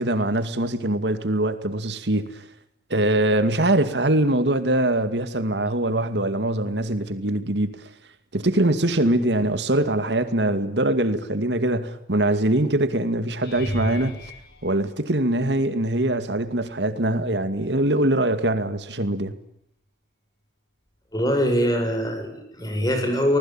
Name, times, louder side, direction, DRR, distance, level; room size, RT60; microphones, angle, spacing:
voice 1, 0.0-2.4 2.9-7.9 8.3-14.2 14.6-19.3, right 1 dB, 75° right, 2.3 m, -23 dB
sound 1, 13.4-15.7 16.4-16.8 17.2-17.4 21.7-21.8, equal, 60° left, 6.7 m, -35 dB
voice 2, 21.1-23.4, equal, 20° left, 7.0 m, -23 dB
26.0 x 20.5 x 9.0 m
head